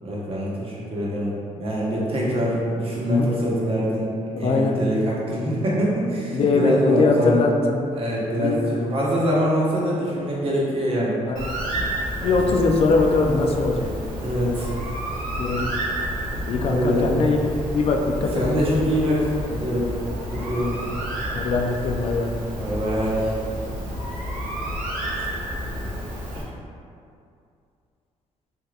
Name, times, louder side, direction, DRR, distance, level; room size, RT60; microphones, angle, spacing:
voice 1, 0.0-4.1 4.4-7.4 8.0-11.2 12.2-12.5 14.2-14.7 16.6-17.1 18.3-19.9 20.3-20.8 22.6-23.3 26.3-26.4, equal, 45° right, -6 dB, 0.9 m, -24 dB
voice 2, 4.4-4.8 6.3-7.8 8.3-8.6 11.3-11.5 12.2-13.9 15.4-15.7 16.5-17.4 17.7-18.4 21.3-22.3, left 3 dB, 45° left, 2 dB, 0.4 m, -21 dB
Bird, 11.4-26.4, equal, 90° right, 0.7 m, -30 dB
3.2 x 2.7 x 2.3 m, 2.4 s
cardioid pair, 85°, 14 cm